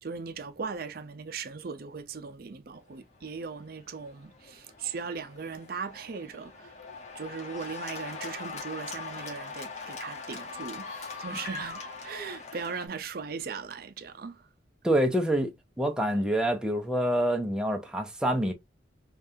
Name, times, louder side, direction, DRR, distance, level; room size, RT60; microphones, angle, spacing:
voice 1, 0.0-6.7 7.1-14.4, right 5 dB, 55° right, 0.5 m, -38 dB
Cheering / Applause, 3.2-12.9, left 4 dB, 40° left, 0.9 m, -42 dB
voice 2, 14.8-15.5 15.8-18.5, right 1 dB, 5° right, 0.6 m, -26 dB
5.1 x 2.4 x 2.7 m
head